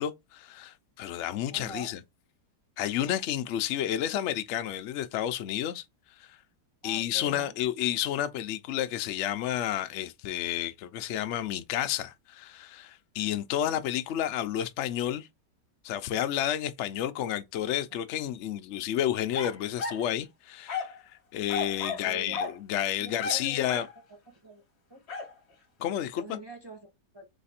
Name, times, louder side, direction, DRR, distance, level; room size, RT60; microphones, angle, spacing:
voice 1, 0.0-2.0 2.8-5.8 6.2-6.4 6.8-15.3 15.8-21.0 21.3-23.9 25.8-26.4, left 11 dB, 80° left, 0.6 m, -31 dB
voice 2, 1.5-1.9 6.8-7.6 21.9-22.4 23.0-23.8 24.3-24.6 24.9-25.0 26.2-27.3, right 1 dB, 35° right, 0.4 m, -44 dB
sound 1, 19.3-20.1 20.7-21.0 21.5-22.1 22.3-22.6 23.2-24.0 25.1-25.3, left 4 dB, 40° left, 1.3 m, -34 dB
3.3 x 3.2 x 4.2 m
omnidirectional pair, 1.9 m